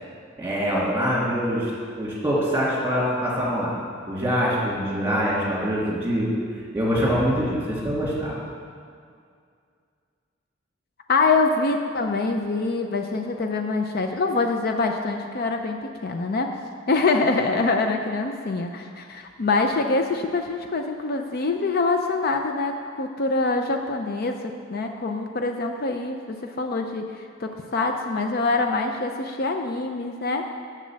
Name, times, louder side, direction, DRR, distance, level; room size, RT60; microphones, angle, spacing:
voice 1, 0.4-1.7 2.0-3.7 4.1-6.3 6.7-8.4, equal, 10° right, -6 dB, 2.7 m, -24 dB
voice 2, 11.1-16.5 16.9-30.4, left 3 dB, 50° left, 5 dB, 0.5 m, -25 dB
7.2 x 6.8 x 7.5 m, 2.2 s
head